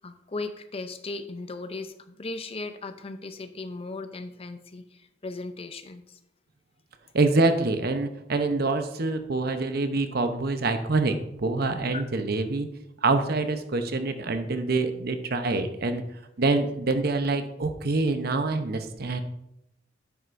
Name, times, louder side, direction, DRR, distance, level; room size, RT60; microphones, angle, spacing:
voice 1, 0.0-6.2 11.9-12.0, left 3 dB, 30° left, 10 dB, 0.5 m, -37 dB
voice 2, 7.1-12.7 13.0-16.0 16.4-19.2, right 3 dB, 55° right, 8 dB, 0.8 m, -26 dB
10.0 x 7.9 x 2.6 m, 0.82 s
head